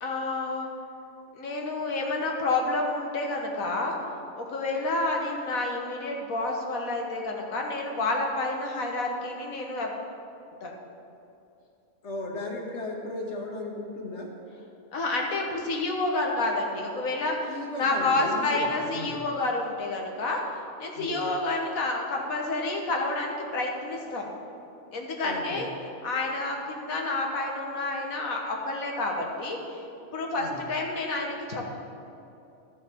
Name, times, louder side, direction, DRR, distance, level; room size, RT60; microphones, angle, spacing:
voice 1, 0.0-0.7 1.3-3.9 4.4-9.9 10.6-10.7 14.9-20.4 20.8-24.3 24.9-25.7 26.0-29.6 30.0-31.7, left 2 dB, 75° left, 0 dB, 1.7 m, -29 dB
voice 2, 12.0-14.3 17.5-19.3 21.0-21.3 25.2-25.7 30.4-30.7, left 2 dB, 55° left, 0 dB, 1.6 m, -36 dB
13.5 x 7.2 x 4.5 m, 2.8 s
omnidirectional pair, 1.5 m